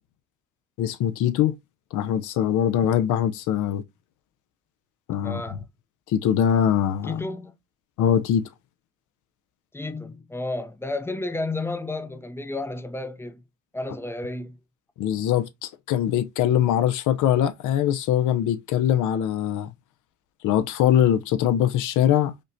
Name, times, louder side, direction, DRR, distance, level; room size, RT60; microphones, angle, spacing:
voice 1, 0.8-1.5 1.9-3.8 5.1-5.6 6.1-7.2 8.0-8.5 15.0-19.7 20.4-22.3, left 10 dB, 80° left, 0.5 m, -22 dB
voice 2, 5.2-5.7 7.0-7.6 9.7-13.4 13.7-14.6, left 2 dB, 10° left, 0.4 m, -32 dB
5.1 x 2.1 x 2.6 m
cardioid pair, 90°, 30 cm